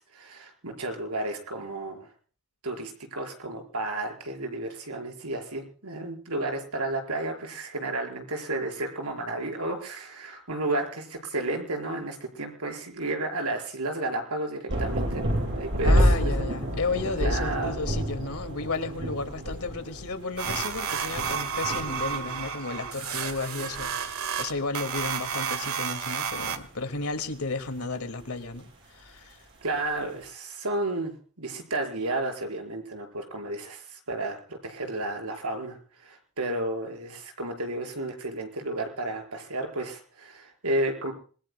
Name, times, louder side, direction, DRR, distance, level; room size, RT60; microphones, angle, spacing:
voice 1, 0.0-2.1 2.6-16.5 17.2-17.8 29.6-41.1, right 2 dB, 90° right, 5.3 m, -32 dB
sound 1, 14.7-22.5 22.8-22.9 23.2-24.1 25.0-25.1, equal, 55° right, 8.0 m, -28 dB
voice 2, 15.8-29.4, left 3 dB, 75° left, 2.3 m, -33 dB
sound 2, 20.4-26.6, right 7 dB, 75° right, 1.8 m, -31 dB
26.5 x 21.5 x 2.3 m
head